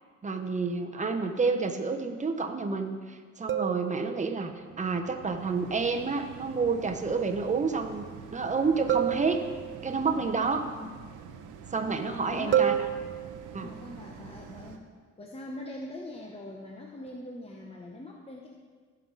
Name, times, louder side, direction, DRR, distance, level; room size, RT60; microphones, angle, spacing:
voice 1, 0.2-4.5 4.8-8.0 8.3-9.4 9.8-10.7 11.7-12.7 13.5-13.7, right 4 dB, 25° right, 5 dB, 1.0 m, -29 dB
sound 1, 3.5-4.6 8.9-10.1 12.5-13.8 17.1-17.3, right 10 dB, 40° right, 0.5 m, -30 dB
sound 2, 4.0-14.8, right 7 dB, 85° right, 0.8 m, -47 dB
voice 2, 12.3-12.7 13.3-14.8 15.2-18.5, left 1 dB, 20° left, 0 dB, 1.0 m, -42 dB
15.0 x 5.5 x 4.0 m, 1.6 s
cardioid pair, 90°, 30 cm